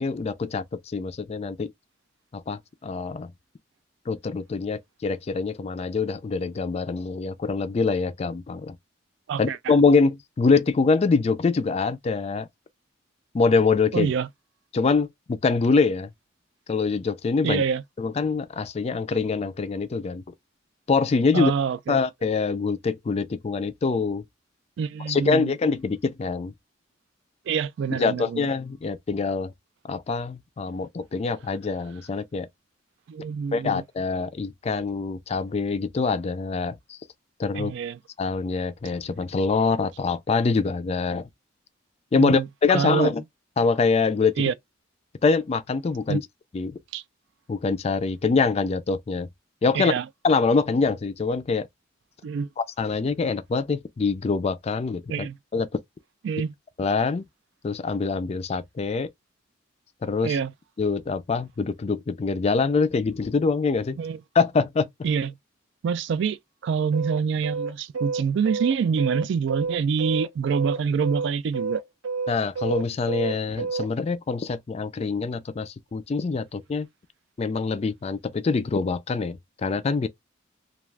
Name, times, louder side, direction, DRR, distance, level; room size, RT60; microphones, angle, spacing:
voice 1, 0.0-1.7 2.3-3.3 4.1-8.8 9.4-12.5 13.3-14.1 14.7-16.1 16.7-17.6 18.0-20.2 20.9-21.5 21.9-24.2 25.1-26.5 28.0-29.5 29.9-32.5 33.5-37.0 37.4-37.7 38.2-41.3 42.1-43.2 43.6-44.4 45.2-46.2 46.5-46.8 47.5-49.3 49.6-49.9 50.2-51.7 52.6-55.3 55.5-55.7 56.8-57.2 57.6-59.1 60.0-60.4 60.8-64.0 64.4-64.9 72.3-76.9 77.4-80.1, left 4 dB, 35° left, 0.3 m, -24 dB
voice 2, 13.9-14.3 17.4-17.8 21.3-22.0 24.8-25.6 27.5-28.5 33.1-33.8 37.5-38.0 42.2-42.5 42.7-43.1 44.4-44.5 46.1-46.2 46.9-47.0 49.7-50.1 52.2-52.5 55.1-55.4 56.2-56.5 60.2-60.5 64.0-64.2 65.0-65.3 65.8-71.8, right 6 dB, 65° right, 0.3 m, -26 dB
sound 1, 66.9-73.9, right 4 dB, 85° right, 0.8 m, -29 dB
2.3 x 2.3 x 3.2 m
head